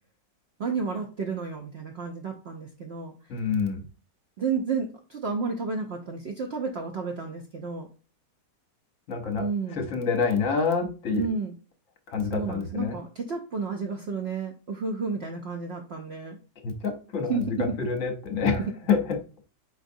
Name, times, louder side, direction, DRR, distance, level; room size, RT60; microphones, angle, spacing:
voice 1, 0.6-3.1 4.4-7.9 9.4-9.8 11.1-11.5 12.3-16.4 17.3-17.8 18.6-18.7, right 5 dB, 85° right, 3 dB, 0.5 m, -31 dB
voice 2, 3.3-3.8 9.1-9.5 9.7-11.3 12.1-13.0 16.6-19.2, left 5 dB, 55° left, 4 dB, 1.2 m, -27 dB
4.9 x 3.8 x 2.6 m, 0.35 s
omnidirectional pair, 1.9 m